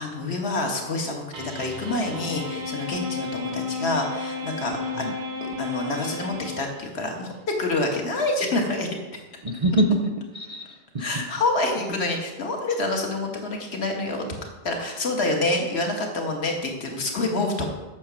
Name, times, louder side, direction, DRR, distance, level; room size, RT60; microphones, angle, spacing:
voice 1, 0.0-5.0 5.4-7.3 7.6-9.2 11.0-14.3 14.6-17.7, left 2 dB, 75° left, 2 dB, 1.7 m, -27 dB
sound 1, 1.3-7.1, left 3 dB, 90° right, 1.8 m, -33 dB
voice 2, 9.4-11.2, right 1 dB, 40° right, 4 dB, 0.6 m, -25 dB
8.6 x 6.8 x 6.2 m, 1.1 s
omnidirectional pair, 1.1 m